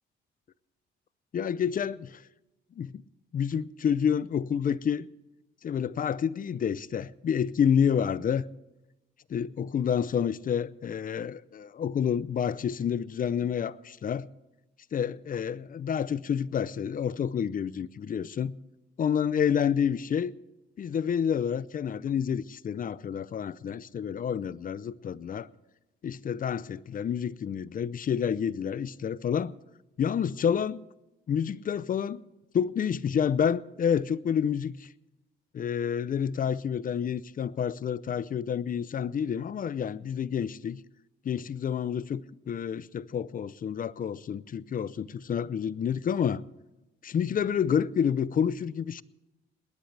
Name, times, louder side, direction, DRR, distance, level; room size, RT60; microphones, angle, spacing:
voice 1, 1.3-2.2 2.8-3.0 3.3-5.1 5.6-8.4 9.3-14.3 14.9-18.5 19.0-20.3 20.8-25.5 26.0-29.5 30.0-30.8 31.3-32.2 32.5-34.9 35.5-40.8 41.2-46.4 47.0-49.0, left 8 dB, 45° left, 0.6 m, -29 dB
20.0 x 18.5 x 3.4 m
cardioid pair, 90°, 20 cm